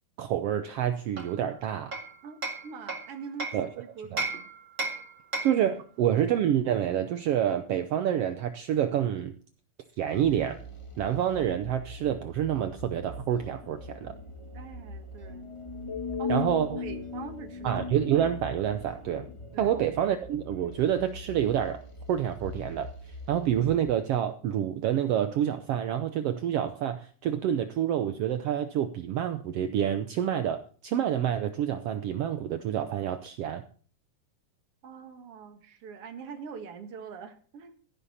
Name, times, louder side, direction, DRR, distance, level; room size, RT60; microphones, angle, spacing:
voice 1, 0.2-1.9 3.5-3.7 4.1-4.2 5.4-9.3 10.0-10.6 11.0-14.1 16.3-16.8 17.6-19.3 19.6-21.8 22.1-22.9 23.3-33.6, right 10 dB, 85° right, 9 dB, 1.3 m, -28 dB
Hammer, 1.2-3.7 4.2-5.7, right 3 dB, 25° right, 1.7 m, -35 dB
voice 2, 2.2-4.5 14.5-15.5 16.2-17.7 19.5-19.7 34.8-37.8, right 6 dB, 50° right, 7 dB, 2.2 m, -44 dB
sound 1, 10.1-23.9, left 3 dB, 40° left, 0.4 m, -40 dB
14.5 x 11.0 x 4.2 m, 0.43 s
omnidirectional pair, 3.7 m